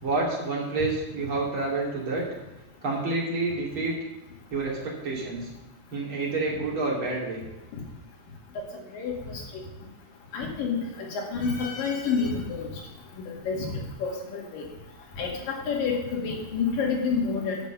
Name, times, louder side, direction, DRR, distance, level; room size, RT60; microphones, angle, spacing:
voice 1, 0.0-2.2 2.8-4.0 4.5-5.5 5.9-7.4, right 3 dB, 35° right, -5 dB, 3.3 m, -28 dB
voice 2, 8.9-9.4 10.3-12.7 13.3-14.6 15.2-17.6, left 5 dB, 70° left, -2 dB, 3.6 m, -29 dB
9.0 x 6.6 x 6.7 m, 0.95 s
omnidirectional pair, 4.1 m